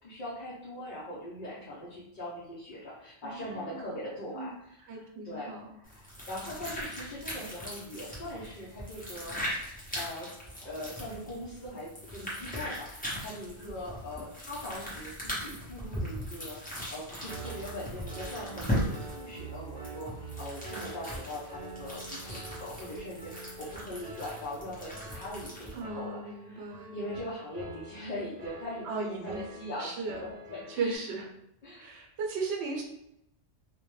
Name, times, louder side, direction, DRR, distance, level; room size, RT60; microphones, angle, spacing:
voice 1, 0.0-10.3 10.6-26.7 26.9-31.0 31.6-32.0, left 1 dB, 50° left, -7 dB, 0.7 m, -41 dB
voice 2, 3.2-3.9 4.3-4.5 4.9-5.6 25.7-26.9 28.8-29.4 29.8-30.2 30.7-31.3 31.8-32.8, right 4 dB, 80° right, 1 dB, 0.8 m, -36 dB
sound 1, 5.8-25.8, equal, 10° left, 0.5 m, -39 dB
Piano, 17.2-31.0, right 3 dB, 45° right, 0.7 m, -46 dB
2.2 x 2.1 x 3.0 m, 0.79 s
omnidirectional pair, 1.1 m